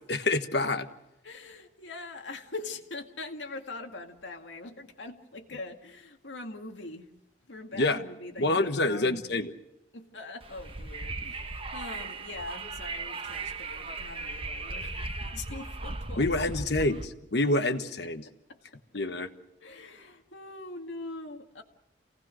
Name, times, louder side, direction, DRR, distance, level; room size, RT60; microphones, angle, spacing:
voice 1, 0.1-0.9 7.7-8.0 8.4-9.5 11.2-11.3 16.2-17.0 17.3-18.2 18.9-19.3, left 2 dB, 65° left, 9 dB, 1.3 m, -27 dB
voice 2, 1.2-7.1 7.5-9.1 9.9-16.5 16.8-16.9 18.5-18.8 19.6-21.6, left 3 dB, 85° left, 3 dB, 2.1 m, -42 dB
Wind, 10.4-17.1, right 3 dB, 30° right, 1.1 m, -37 dB
28.0 x 18.0 x 6.4 m, 0.87 s
head